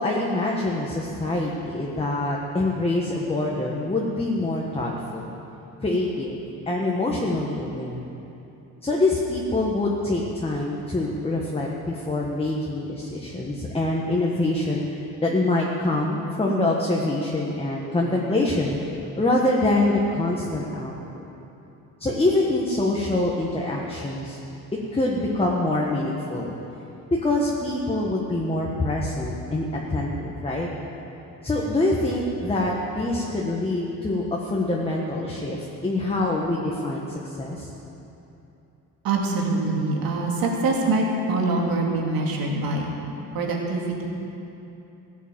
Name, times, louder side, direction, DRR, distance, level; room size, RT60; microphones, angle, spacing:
voice 1, 0.0-5.4 5.8-8.1 8.8-18.8 19.2-21.2 22.0-24.4 24.9-26.6 27.1-30.7 31.4-37.7, left 2 dB, 15° left, -2 dB, 1.5 m, -25 dB
voice 2, 39.0-42.9 43.3-44.0, right 2 dB, 70° right, -1 dB, 2.7 m, -24 dB
15.5 x 8.3 x 7.6 m, 2.9 s
cardioid pair, 105°, 36 cm